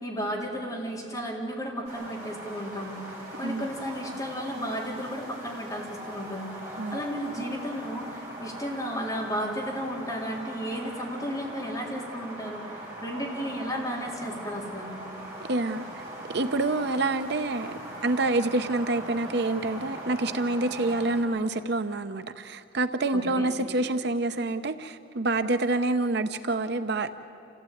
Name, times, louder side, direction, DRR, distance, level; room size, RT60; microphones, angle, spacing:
voice 1, 0.0-3.0 3.4-14.9 23.1-23.6, equal, 20° left, -3 dB, 3.9 m, -34 dB
sound 1, 1.8-21.2, right 1 dB, 20° right, 5.3 m, -41 dB
voice 2, 15.5-15.8 16.3-17.7 18.0-27.2, right 2 dB, 60° right, 10 dB, 0.8 m, -27 dB
28.0 x 15.5 x 9.3 m, 2.6 s
head